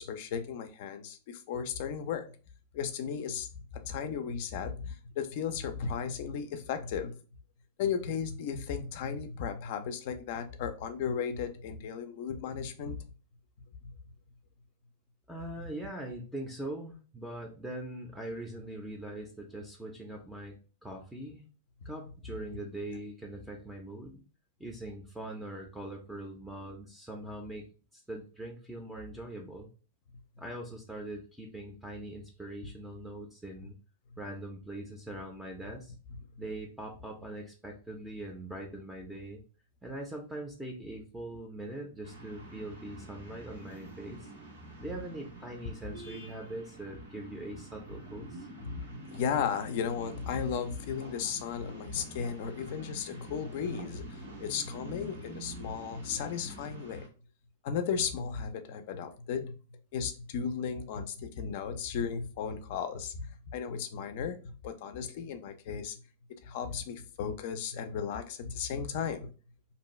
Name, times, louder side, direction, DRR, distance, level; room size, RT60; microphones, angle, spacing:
voice 1, 0.0-2.3 2.7-3.5 3.8-7.1 7.8-13.0 13.8-13.9 48.6-48.8 49.1-57.1 57.6-59.5 59.9-63.3 63.5-66.0 66.4-69.3, left 7 dB, 55° left, 9 dB, 0.4 m, -35 dB
voice 2, 15.3-20.5 20.8-21.4 21.8-24.2 24.6-27.7 28.1-29.7 30.4-33.7 34.2-35.9 36.4-39.4 39.8-44.3 44.8-48.5, right 1 dB, 5° right, 1 dB, 0.5 m, -42 dB
sound 1, 42.0-57.1, right 2 dB, 85° right, 0.9 m, -47 dB
2.6 x 2.2 x 3.0 m, 0.37 s
hypercardioid pair, 110°, 0 cm